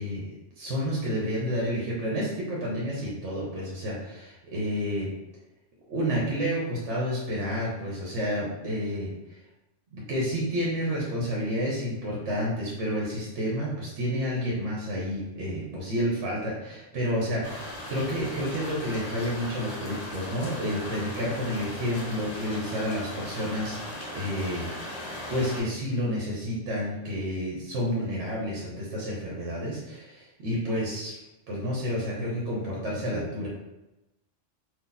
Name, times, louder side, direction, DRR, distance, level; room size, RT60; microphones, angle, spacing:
voice 1, 0.0-5.1 5.9-9.4 9.9-24.7 25.3-31.2 31.5-33.5, equal, 75° right, -4 dB, 1.1 m, -30 dB
sound 1, 17.4-25.6, left 1 dB, 40° left, 0.7 m, -38 dB
2.8 x 2.4 x 3.8 m, 0.96 s
omnidirectional pair, 1.3 m